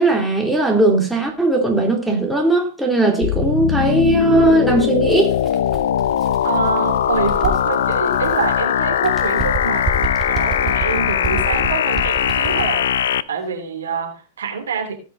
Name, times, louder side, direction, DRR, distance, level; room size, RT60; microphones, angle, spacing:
voice 1, 0.0-5.3, right 2 dB, 5° right, 2.8 m, -17 dB
sound 1, 3.2-13.2, left 10 dB, 75° left, 0.5 m, -20 dB
Bird, 5.0-8.6 9.0-12.8, right 3 dB, 25° right, 2.5 m, -29 dB
voice 2, 6.4-12.9 13.3-15.0, right 5 dB, 80° right, 2.9 m, -26 dB
18.0 x 6.2 x 3.9 m
hypercardioid pair, 100°, 0 cm